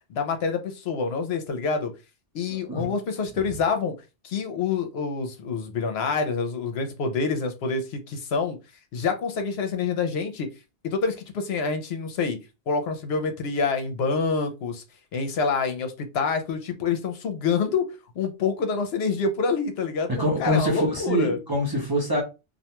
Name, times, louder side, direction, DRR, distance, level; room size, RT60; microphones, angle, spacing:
voice 1, 0.1-1.9 2.3-3.9 4.2-8.6 8.9-10.5 10.8-12.4 12.7-14.8 15.1-17.8 18.2-21.4, left 5 dB, 70° left, 0.8 m, -27 dB
voice 2, 20.1-22.2, equal, 25° right, 0.6 m, -25 dB
2.4 x 2.2 x 2.9 m
omnidirectional pair, 1.1 m